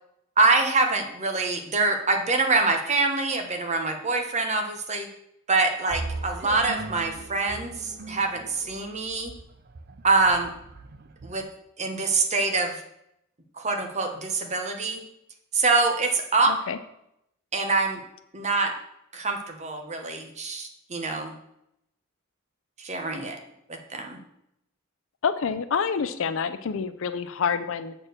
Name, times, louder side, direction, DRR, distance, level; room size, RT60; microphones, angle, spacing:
voice 1, 0.4-5.1 5.5-9.3 10.0-10.5 11.2-11.4 11.8-12.8 13.6-15.0 15.5-16.5 17.5-18.0 18.3-18.7 19.1-21.3 22.8-23.4 23.7-24.2, right 3 dB, 35° right, 4 dB, 1.1 m, -25 dB
sound 1, 5.9-11.4, right 3 dB, 50° right, 0.6 m, -39 dB
voice 2, 16.5-16.8 25.2-27.9, left 6 dB, 65° left, 11 dB, 0.5 m, -27 dB
7.4 x 4.6 x 6.5 m, 0.78 s
head